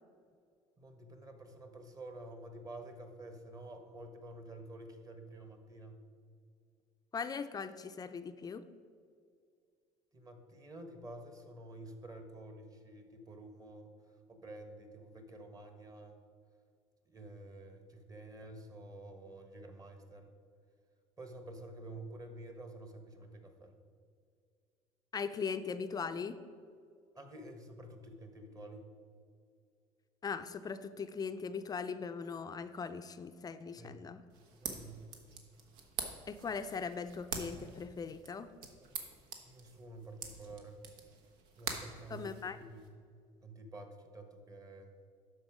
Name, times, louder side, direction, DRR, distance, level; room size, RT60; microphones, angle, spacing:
voice 1, 0.8-6.0 10.1-13.9 14.3-16.2 17.1-20.3 21.2-23.7 27.1-28.9 33.8-34.0 34.6-35.2 39.4-40.8 41.5-42.9 43.4-44.9, right 2 dB, 25° right, 5 dB, 1.2 m, -50 dB
voice 2, 7.1-8.7 25.1-26.4 30.2-34.2 36.3-38.5 42.1-42.6, left 5 dB, 25° left, 10 dB, 0.4 m, -40 dB
sound 1, 34.3-42.9, right 5 dB, 85° right, 1.1 m, -46 dB
12.0 x 4.5 x 4.9 m, 2.3 s
supercardioid pair, 105°, 14 cm